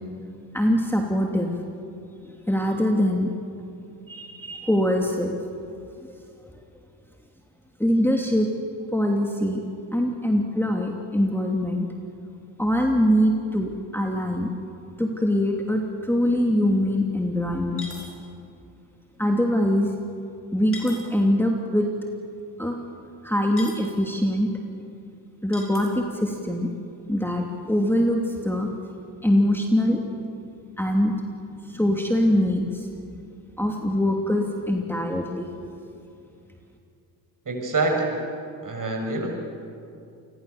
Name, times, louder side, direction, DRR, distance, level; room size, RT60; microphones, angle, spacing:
voice 1, 0.5-1.5 2.5-3.3 4.1-5.3 6.0-6.1 7.8-8.5 8.9-9.6 9.9-11.9 12.6-14.5 15.0-17.9 19.2-19.9 20.5-21.9 22.6-22.8 23.2-24.5 25.4-26.7 27.1-28.7 29.2-30.0 30.8-31.1 31.7-32.9 33.6-35.5, equal, 5° left, 1 dB, 2.7 m, -23 dB
sound 1, 15.7-15.8 16.2-16.3 17.8-18.2 20.7-21.0 23.6-23.9 25.5-26.0, left 2 dB, 25° left, 6.1 m, -39 dB
voice 2, 37.5-38.2 38.6-39.3, right 3 dB, 40° right, 2 dB, 6.9 m, -25 dB
27.5 x 21.0 x 7.1 m, 2.5 s
supercardioid pair, 65°, 48 cm